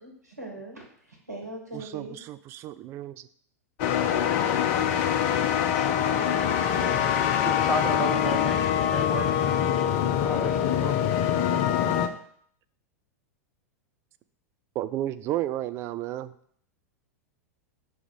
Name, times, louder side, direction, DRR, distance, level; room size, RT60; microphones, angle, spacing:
voice 1, 0.0-2.2, right 2 dB, 85° right, 0 dB, 1.6 m, -41 dB
voice 2, 1.7-3.3 14.8-16.3, right 13 dB, 30° right, 13 dB, 0.3 m, -32 dB
sound 1, 3.8-12.1, left 9 dB, 45° left, 0.6 m, -24 dB
voice 3, 5.6-6.3 6.8-6.9 7.4-9.6 10.2-10.9, right 1 dB, ahead, 1 dB, 0.7 m, -34 dB
6.1 x 3.4 x 5.1 m, 0.62 s
figure-of-eight pair, 95°, 8 cm